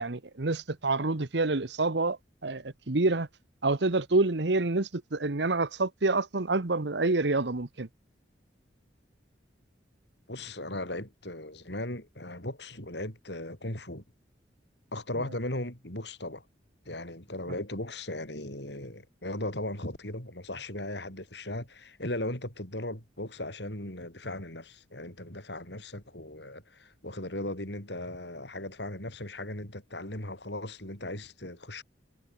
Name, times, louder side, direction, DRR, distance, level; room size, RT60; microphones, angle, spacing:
voice 1, 0.0-3.3 3.6-7.9, right 3 dB, 70° right, 1.2 m, -27 dB
voice 2, 10.3-14.0 14.9-16.4 16.8-31.8, left 1 dB, 65° left, 8.0 m, -37 dB
head